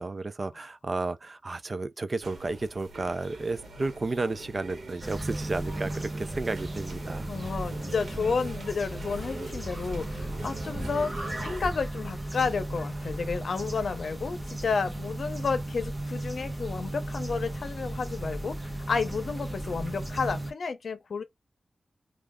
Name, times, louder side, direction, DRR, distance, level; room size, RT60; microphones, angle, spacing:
voice 1, 0.0-7.3, right 3 dB, 40° right, 0.4 m, -32 dB
sound 1, 2.2-11.7, right 2 dB, 75° right, 1.1 m, -44 dB
sound 2, 5.0-20.5, right 1 dB, 25° right, 1.0 m, -35 dB
voice 2, 7.3-11.1 11.4-21.2, left 5 dB, 75° left, 0.6 m, -31 dB
3.1 x 2.3 x 3.5 m
wide cardioid pair, 105°, 0 cm